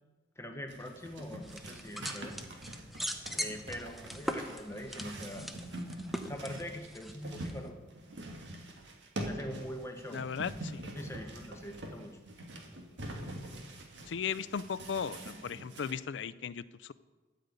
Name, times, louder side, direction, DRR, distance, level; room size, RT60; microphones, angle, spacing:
voice 1, 0.4-2.4 3.4-5.5 6.2-7.8 9.2-10.2 10.9-12.2, equal, 15° left, 4 dB, 0.9 m, -43 dB
sound 1, 0.7-15.9, right 1 dB, 75° right, 1.7 m, -44 dB
sound 2, 1.4-7.7, equal, ahead, 0.6 m, -41 dB
voice 2, 10.1-10.8 14.1-16.9, left 6 dB, 75° left, 16 dB, 0.4 m, -37 dB
13.0 x 5.2 x 8.2 m, 1.3 s
head